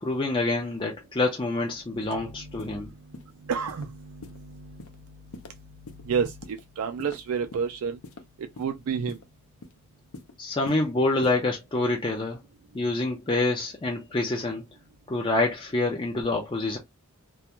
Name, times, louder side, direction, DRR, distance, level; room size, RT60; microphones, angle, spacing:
voice 1, 0.0-2.9 10.4-12.4 12.7-14.6 15.1-16.8, left 2 dB, 20° left, 0.4 m, -26 dB
voice 2, 2.1-4.9 6.0-8.0 8.6-9.2, right 6 dB, 75° right, 0.3 m, -31 dB
sound 1, 2.6-2.7 3.1-3.3 3.7-3.8 4.2-4.4 4.8-5.0 5.3-5.5 5.9-6.0 6.4-6.6 7.0-7.7 8.0-8.2 8.6-8.7 9.1-9.2 9.6-9.8 10.1-10.3 10.7-10.8 11.2-11.4, left 3 dB, 70° left, 0.5 m, -42 dB
2.4 x 2.2 x 2.9 m
head